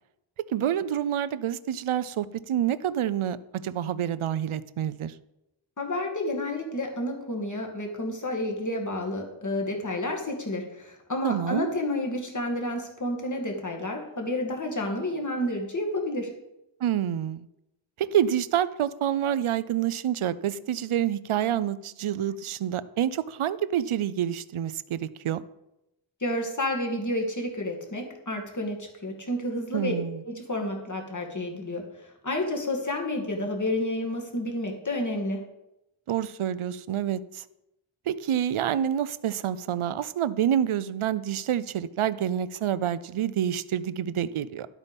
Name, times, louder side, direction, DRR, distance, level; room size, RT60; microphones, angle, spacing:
voice 1, 0.5-5.1 11.2-11.8 16.8-17.5 18.0-25.4 29.7-30.2 36.1-37.4 38.1-44.7, right 10 dB, 75° right, 16 dB, 0.7 m, -27 dB
voice 2, 5.8-16.3 26.2-29.9 30.2-31.8 32.2-35.4, left 1 dB, 35° left, 2 dB, 2.3 m, -30 dB
12.5 x 8.3 x 5.3 m, 0.88 s
wide cardioid pair, 125°, 50 cm